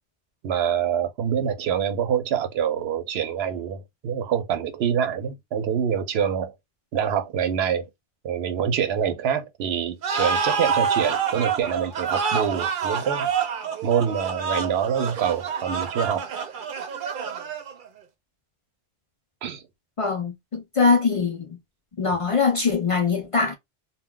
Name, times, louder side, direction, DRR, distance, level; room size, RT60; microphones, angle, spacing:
voice 1, 0.4-6.5 6.9-7.9 8.2-13.3 13.8-16.3 19.4-19.6, right 8 dB, 80° right, 0.8 m, -25 dB
sound 1, 10.0-17.9, right 6 dB, 60° right, 0.7 m, -27 dB
voice 2, 20.0-21.6 22.0-23.5, left 4 dB, 50° left, 0.4 m, -22 dB
2.2 x 2.2 x 3.6 m
omnidirectional pair, 1.1 m